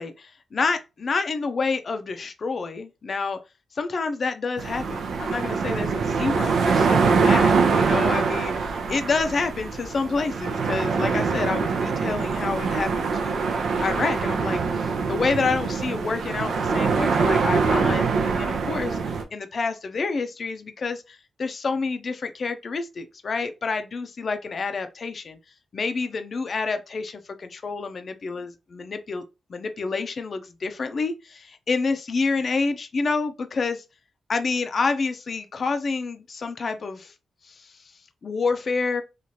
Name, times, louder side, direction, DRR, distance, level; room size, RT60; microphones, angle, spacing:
voice 1, 0.0-3.4 3.8-13.4 13.8-25.4 25.7-29.2 29.5-33.8 34.3-37.1 37.4-37.7 38.2-39.0, left 4 dB, 55° left, 0.4 m, -28 dB
sound 1, 4.6-19.2, right 5 dB, 90° right, 0.5 m, -24 dB
3.0 x 2.4 x 2.7 m
cardioid pair, 75°, 0 cm